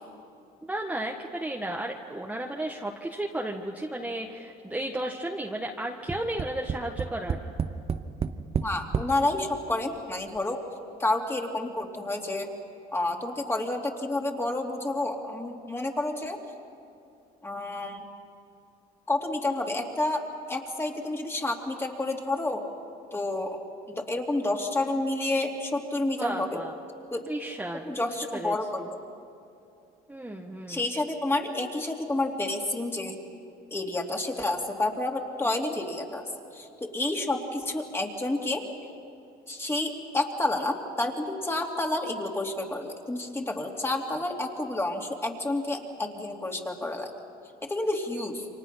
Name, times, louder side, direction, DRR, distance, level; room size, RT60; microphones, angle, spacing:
voice 1, 0.6-7.4 26.2-26.7 27.2-27.9 28.3-28.5 30.1-30.8, right 1 dB, 10° right, 0 dB, 1.5 m, -33 dB
Tap, 6.1-9.1 10.0-10.1 10.4-10.5, right 6 dB, 35° right, 0.9 m, -30 dB
voice 2, 8.6-10.6 11.0-12.5 12.9-16.4 17.4-18.0 19.1-22.6 23.1-23.6 23.9-26.6 27.1-27.2 27.9-28.9 30.7-33.2 33.7-36.2 36.5-38.6 39.5-47.1 47.6-48.5, left 2 dB, 15° left, 2 dB, 2.8 m, -29 dB
29.0 x 24.5 x 5.8 m, 2.7 s
cardioid pair, 110°, 17 cm